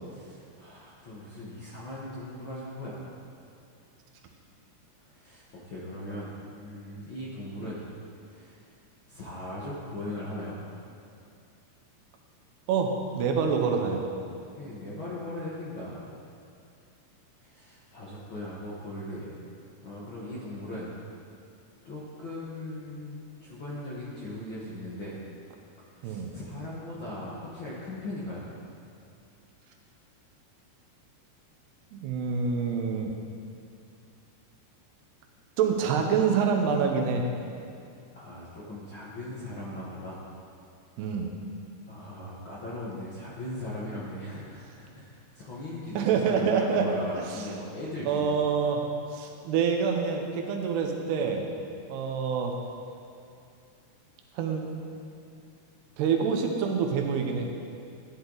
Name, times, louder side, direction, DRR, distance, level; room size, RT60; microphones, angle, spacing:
voice 1, 0.0-3.0 5.0-7.8 8.2-8.7 9.1-10.6 14.5-16.1 17.4-19.4 19.8-20.9 21.8-25.2 25.9-28.5 38.1-40.2 41.9-48.4, left 1 dB, 85° left, -7 dB, 1.1 m, -39 dB
voice 2, 12.7-14.0 26.0-26.3 31.9-33.1 35.6-37.3 41.0-41.3 45.9-46.9 47.2-47.6 48.0-48.8 49.1-51.4 51.9-52.6 54.3-54.7 56.0-57.5, right 6 dB, 85° right, 2 dB, 3.0 m, -26 dB
15.0 x 10.5 x 4.0 m, 2.5 s
omnidirectional pair, 4.6 m